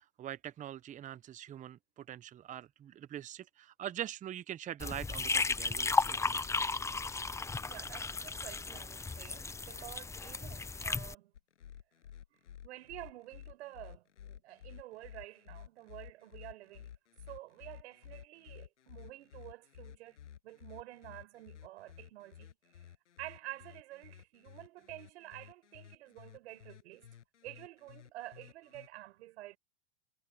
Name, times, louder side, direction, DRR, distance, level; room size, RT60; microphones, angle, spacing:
voice 1, 0.0-6.4, right 11 dB, 20° right, 0.8 m, -43 dB
sound 1, 4.8-11.1, left 3 dB, 10° left, 0.9 m, -34 dB
voice 2, 7.6-11.3 12.3-16.9 17.3-20.2 20.4-22.5 23.2-27.1 27.4-29.6, right 16 dB, 65° right, 6.7 m, -50 dB
sound 2, 11.3-28.9, left 9 dB, 85° left, 7.7 m, -53 dB
hypercardioid pair, 115°, 35 cm